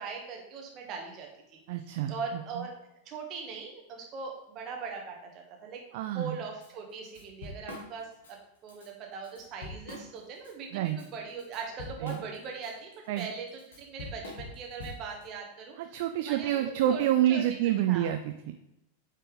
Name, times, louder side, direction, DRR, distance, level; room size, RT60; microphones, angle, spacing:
voice 1, 0.0-1.6 2.1-2.7 3.0-8.4 8.6-17.0 17.3-17.4 17.9-18.1, right 5 dB, 35° right, 1 dB, 1.7 m, -40 dB
voice 2, 1.7-2.6 5.9-6.4 10.7-11.0 12.0-12.2 13.1-13.3 15.8-18.5, right 12 dB, 50° right, 7 dB, 0.4 m, -28 dB
Drum kit / Drum, 6.6-6.7 7.0-8.3 8.7-8.9 9.2-10.5 10.9-15.2, left 2 dB, 65° left, 1.9 m, -44 dB
8.8 x 4.4 x 3.5 m, 0.85 s
figure-of-eight pair, 90°, 0 cm